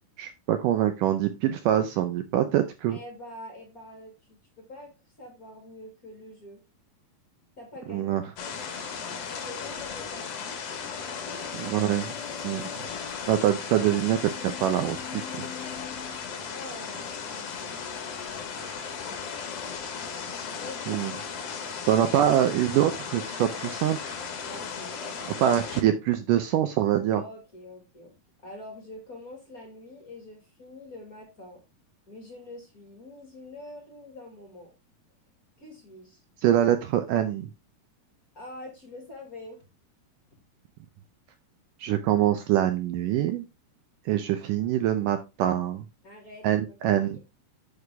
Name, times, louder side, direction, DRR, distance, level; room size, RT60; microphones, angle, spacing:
voice 1, 0.2-3.0 7.9-8.2 11.6-12.2 12.4-12.7 13.3-15.4 20.9-21.1 21.9-24.2 25.4-27.2 36.4-37.5 41.8-43.5 44.1-45.9 46.4-47.2, right 11 dB, 85° right, 9 dB, 1.9 m, -24 dB
voice 2, 2.9-4.9 5.2-6.6 7.6-8.9 9.3-10.5 16.5-17.8 20.5-21.0 24.4-25.4 27.1-31.6 32.1-34.7 35.6-36.2 38.3-39.7 46.0-47.2, left 1 dB, 30° left, 2 dB, 1.7 m, -45 dB
sound 1, 8.4-16.9 17.5-19.8, left 9 dB, 75° left, 1.5 m, -46 dB
sound 2, 8.4-25.8, left 6 dB, 55° left, 1.9 m, -36 dB
8.5 x 6.7 x 3.5 m, 0.26 s
omnidirectional pair, 4.6 m